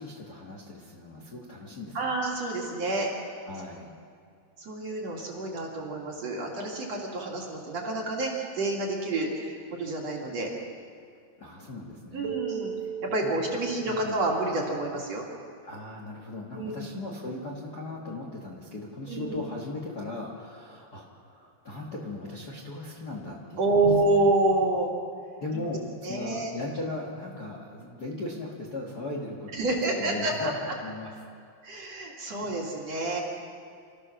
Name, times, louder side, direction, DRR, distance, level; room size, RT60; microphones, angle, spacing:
voice 1, 0.0-2.1 3.5-3.9 11.4-12.5 13.2-14.2 15.6-23.8 25.4-30.5 30.8-31.1 32.3-32.4, left 2 dB, 80° left, -1 dB, 0.8 m, -38 dB
voice 2, 1.9-3.1 4.6-10.5 12.1-12.7 13.0-15.2 16.5-16.8 19.1-19.4 23.6-24.9 25.5-25.7 26.0-26.5 29.5-30.5 31.6-33.2, right 2 dB, 40° right, -2 dB, 3.1 m, -28 dB
Keyboard (musical), 12.2-15.4, right 10 dB, 80° right, 2.3 m, -38 dB
28.5 x 14.5 x 6.4 m, 2.3 s
omnidirectional pair, 5.1 m